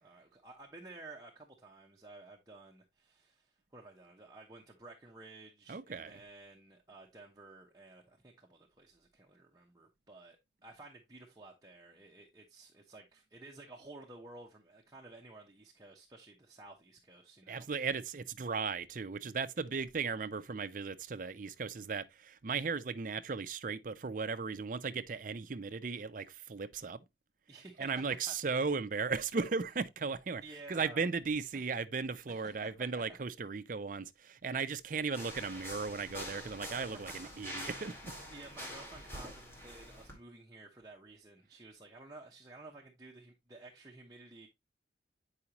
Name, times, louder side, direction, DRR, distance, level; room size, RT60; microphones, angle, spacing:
voice 1, 0.0-17.7 27.5-28.4 30.4-31.0 31.5-31.7 32.3-33.2 36.7-37.2 38.3-44.5, right 2 dB, 20° right, 0.8 m, -53 dB
voice 2, 5.7-6.1 17.5-27.0 27.8-30.4 30.7-38.1, right 5 dB, 50° right, 0.5 m, -36 dB
sound 1, 35.1-40.1, equal, 15° left, 2.3 m, -46 dB
8.4 x 4.9 x 2.9 m
head